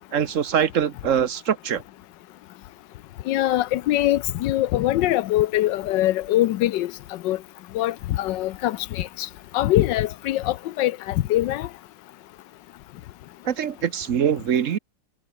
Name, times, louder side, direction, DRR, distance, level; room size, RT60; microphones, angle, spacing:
voice 1, 0.1-1.8 13.4-14.8, right 8 dB, 50° right, 1.1 m, -23 dB
voice 2, 3.3-6.9 7.2-7.4 7.7-9.3 9.5-11.7, left 14 dB, 75° left, 1.3 m, -23 dB
omnidirectional pair, 2.0 m